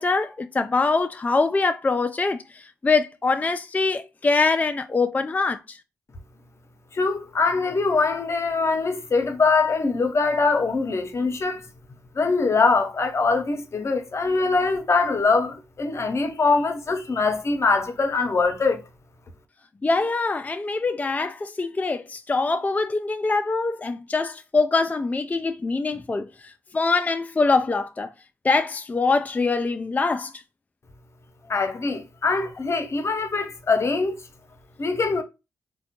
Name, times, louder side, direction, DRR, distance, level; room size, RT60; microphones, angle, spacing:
voice 1, 0.0-5.8 19.8-28.1 28.4-30.3, left 3 dB, 25° left, 0.3 m, -24 dB
voice 2, 6.9-11.6 12.2-18.8 31.5-34.2 34.8-35.2, left 4 dB, 45° left, 0.7 m, -23 dB
3.3 x 2.2 x 2.8 m
supercardioid pair, 45°, 7 cm